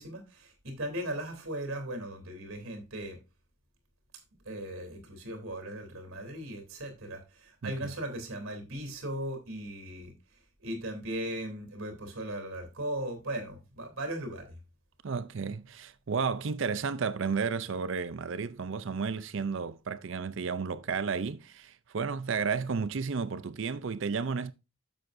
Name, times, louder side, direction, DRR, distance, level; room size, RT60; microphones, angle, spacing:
voice 1, 0.0-3.2 4.4-10.1 10.6-14.5, right 1 dB, 75° right, 3.1 m, -38 dB
voice 2, 15.0-24.5, right 5 dB, 60° right, 0.5 m, -32 dB
10.5 x 7.6 x 2.6 m
head